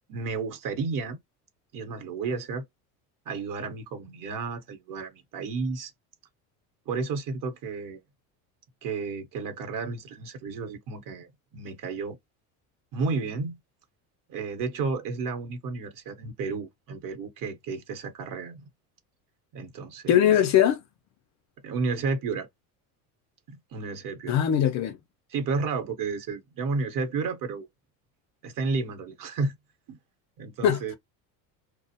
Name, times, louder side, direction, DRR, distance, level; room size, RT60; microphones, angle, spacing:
voice 1, 0.1-1.2 1.7-2.6 3.3-5.9 6.9-8.0 8.8-12.2 12.9-13.6 14.3-18.6 19.5-20.4 21.6-22.5 23.5-24.4 25.3-27.7 28.4-29.5 29.9-30.0 30.4-31.0, right 4 dB, 50° right, 0.9 m, -32 dB
voice 2, 20.1-20.8 24.3-25.0 30.6-31.0, left 10 dB, 40° left, 0.4 m, -21 dB
2.4 x 2.0 x 2.8 m
supercardioid pair, 95°, 43 cm